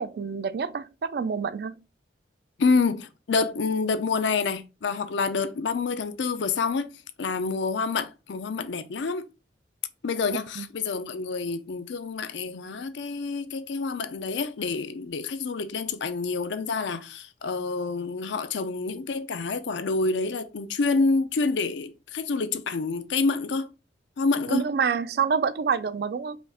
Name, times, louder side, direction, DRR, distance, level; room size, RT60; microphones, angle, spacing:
voice 1, 0.0-1.8 10.6-10.7 24.5-26.4, right 6 dB, 55° right, 0.3 m, -27 dB
voice 2, 2.6-6.9 7.2-9.3 10.0-23.7 24.2-24.7, left 4 dB, 75° left, 0.5 m, -27 dB
5.1 x 2.4 x 3.3 m
head